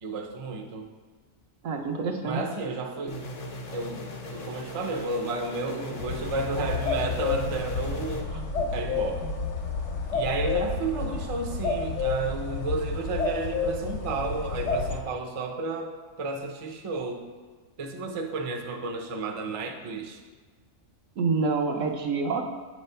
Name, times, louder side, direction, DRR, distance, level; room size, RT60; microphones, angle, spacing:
voice 1, 0.0-0.9 2.2-3.2 3.7-9.2 10.1-17.2 17.8-20.2, right 3 dB, 40° right, 3 dB, 0.5 m, -32 dB
voice 2, 1.6-2.4 8.3-8.4 21.2-22.5, right 4 dB, 80° right, 3 dB, 1.1 m, -27 dB
sound 1, 3.1-8.2, left 1 dB, 45° left, 0.6 m, -39 dB
sound 2, 6.0-15.0, left 4 dB, 65° left, 1.1 m, -30 dB
8.2 x 3.2 x 5.5 m, 1.4 s
omnidirectional pair, 1.3 m